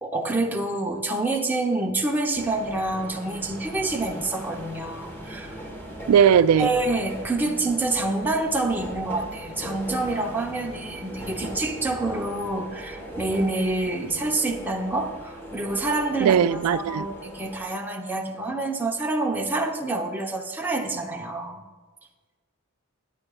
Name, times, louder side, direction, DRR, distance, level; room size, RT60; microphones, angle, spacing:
voice 1, 0.0-5.6 6.6-21.6, right 2 dB, 10° right, 1 dB, 0.9 m, -27 dB
sound 1, 2.4-17.6, right 1 dB, 10° left, 1.4 m, -39 dB
voice 2, 6.1-6.7 16.2-17.1, right 8 dB, 80° right, 15 dB, 0.3 m, -18 dB
14.0 x 9.7 x 2.4 m, 1.4 s
head